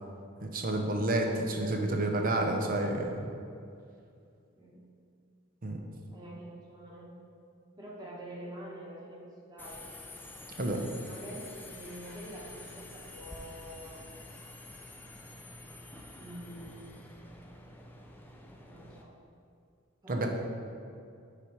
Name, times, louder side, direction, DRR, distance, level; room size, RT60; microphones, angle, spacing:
voice 1, 0.4-3.2 5.6-5.8 10.6-10.8 20.1-20.3, right 1 dB, 40° right, 3 dB, 0.7 m, -30 dB
voice 2, 4.5-4.9 6.1-7.2 7.8-9.8 11.1-14.0 16.1-17.0 18.7-19.1 20.0-20.3, right 1 dB, 20° right, -5 dB, 1.3 m, -46 dB
Subway metro underground, 9.6-19.0, left 2 dB, 10° left, 0.4 m, -48 dB
6.8 x 4.9 x 4.6 m, 2.4 s
head